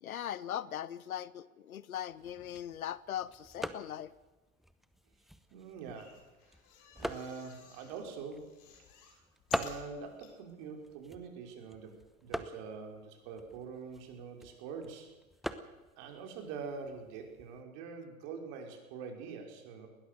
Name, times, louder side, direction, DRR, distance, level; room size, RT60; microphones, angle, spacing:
voice 1, 0.0-4.1, left 10 dB, 80° left, 20 dB, 0.9 m, -40 dB
sound 1, 2.1-17.6, equal, ahead, 0.9 m, -45 dB
voice 2, 5.5-6.2 7.0-8.6 9.5-15.1 16.0-19.9, right 5 dB, 45° right, 3 dB, 5.1 m, -44 dB
sound 2, 5.8-8.0 8.4-10.3 10.9-11.0 11.2-11.3, left 6 dB, 50° left, 5.7 m, -54 dB
20.5 x 18.5 x 6.8 m, 1.1 s
hypercardioid pair, 105°, 42 cm